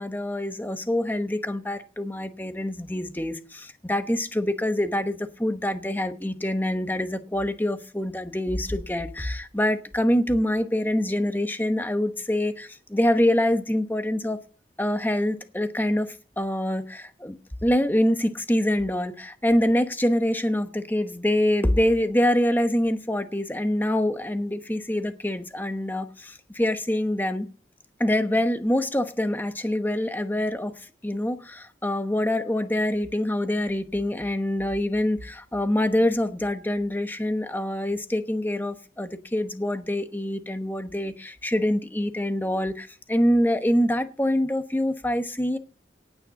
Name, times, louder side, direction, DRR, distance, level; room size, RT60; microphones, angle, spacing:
voice 1, 0.0-14.4 14.8-27.5 28.0-45.6, left 1 dB, 10° left, 1.0 m, -25 dB
18.0 x 6.6 x 6.4 m
head